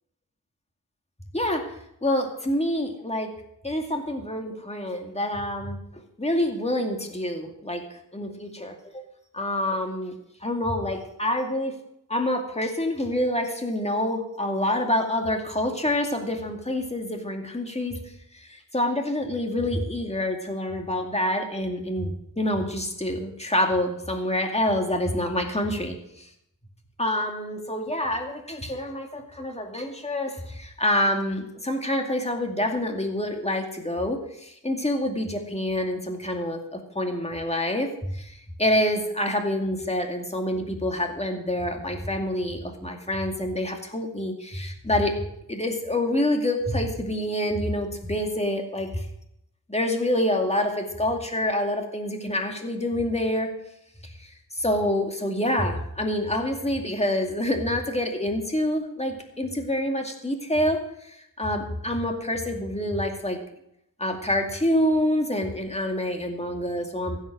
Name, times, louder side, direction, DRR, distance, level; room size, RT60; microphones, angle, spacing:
voice 1, 1.3-1.7 2.0-3.3 3.6-5.8 6.2-7.8 8.1-9.0 9.3-10.1 10.4-11.8 12.1-18.0 18.3-26.3 27.0-45.1 45.5-49.1 49.7-53.5 54.0-63.4 64.0-67.2, left 1 dB, 15° left, 3 dB, 2.4 m, -27 dB
15.5 x 8.2 x 6.3 m, 0.76 s
wide cardioid pair, 75°, 37 cm